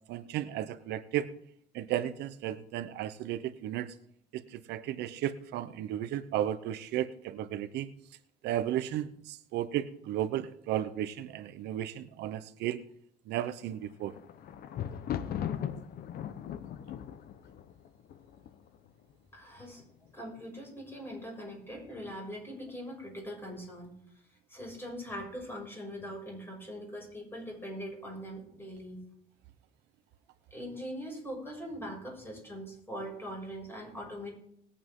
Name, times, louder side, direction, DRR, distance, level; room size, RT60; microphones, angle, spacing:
voice 1, 0.1-1.3 1.7-3.9 4.3-7.9 8.4-12.8 13.3-14.1, right 12 dB, 80° right, 12 dB, 0.8 m, -34 dB
Thunder, 13.7-18.9 19.6-20.1 20.4-20.5, left 9 dB, 65° left, 1.0 m, -38 dB
voice 2, 19.3-19.8 20.1-23.9 24.5-29.0 30.5-34.3, equal, 15° left, 0 dB, 6.5 m, -41 dB
20.0 x 8.6 x 3.7 m, 0.67 s
cardioid pair, 110°, 17 cm